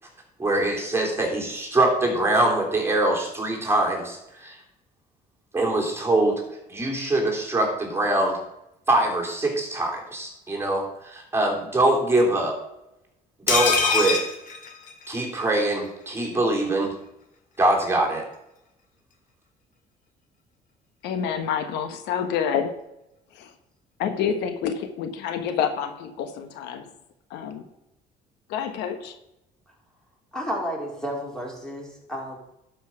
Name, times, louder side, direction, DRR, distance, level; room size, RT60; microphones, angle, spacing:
voice 1, 0.4-4.6 5.5-6.3 6.7-8.4 8.9-12.5 13.5-14.2 15.1-16.9 17.6-18.2, right 2 dB, 15° right, -1 dB, 3.3 m, -23 dB
sound 1, 13.5-15.4 15.7-15.8 16.1-16.2, left 5 dB, 50° left, 2.0 m, -24 dB
voice 2, 21.0-22.7 23.3-23.5 24.0-26.9 27.3-27.6 28.5-29.2, left 7 dB, 90° left, 8 dB, 1.2 m, -28 dB
voice 3, 30.3-32.4, equal, 5° left, -1 dB, 3.5 m, -32 dB
11.5 x 5.5 x 6.2 m, 0.87 s
cardioid pair, 110°, 17 cm